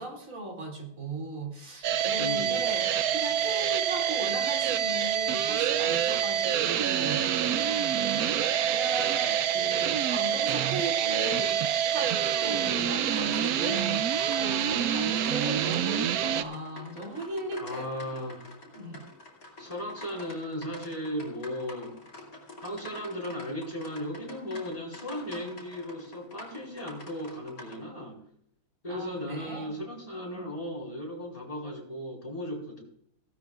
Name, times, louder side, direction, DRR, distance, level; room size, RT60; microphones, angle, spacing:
voice 1, 0.0-7.2 8.7-18.1 18.7-19.1 28.9-29.7 30.3-30.5, right 1 dB, 55° right, 0 dB, 2.9 m, -38 dB
sound 1, 1.8-16.4, right 9 dB, 70° right, 1.0 m, -27 dB
voice 2, 2.2-2.7 17.6-18.4 19.6-22.0 22.6-28.2 28.8-32.8, left 1 dB, 20° left, 0 dB, 3.9 m, -36 dB
sound 2, 13.1-27.8, left 1 dB, 55° left, 3.5 m, -47 dB
16.5 x 12.5 x 2.4 m, 0.69 s
omnidirectional pair, 1.8 m